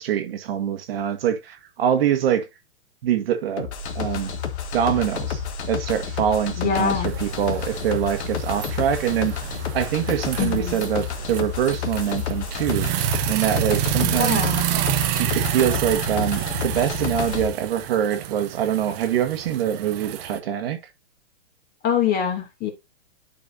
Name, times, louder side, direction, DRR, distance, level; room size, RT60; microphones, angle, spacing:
voice 1, 0.0-2.5 3.0-3.7 3.9-4.3 4.7-9.4 9.7-12.9 13.3-14.5 15.2-20.8, right 9 dB, 55° right, 1.6 m, -24 dB
sound 1, 3.6-17.5, left 7 dB, 65° left, 1.8 m, -30 dB
voice 2, 6.6-7.1 10.4-10.8 14.0-14.6 21.8-22.7, left 7 dB, 25° left, 2.6 m, -24 dB
sound 2, 7.1-20.4, right 13 dB, 35° right, 0.9 m, -29 dB
11.5 x 4.7 x 2.7 m
hypercardioid pair, 135°, 36 cm